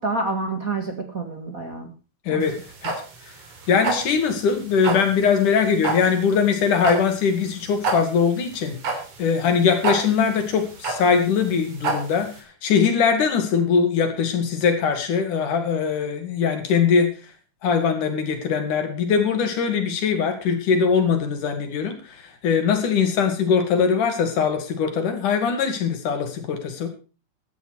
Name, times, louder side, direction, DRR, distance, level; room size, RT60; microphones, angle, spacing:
voice 1, 0.0-1.9 2.3-2.4, right 3 dB, 35° right, 5 dB, 1.8 m, -28 dB
voice 2, 2.3-2.9 3.7-8.8 9.2-17.1 17.6-26.9, left 6 dB, 80° left, 7 dB, 3.8 m, -21 dB
sound 1, 2.4-12.4, right 3 dB, 65° right, 4.6 m, -29 dB
15.5 x 11.0 x 4.7 m, 0.35 s
omnidirectional pair, 3.6 m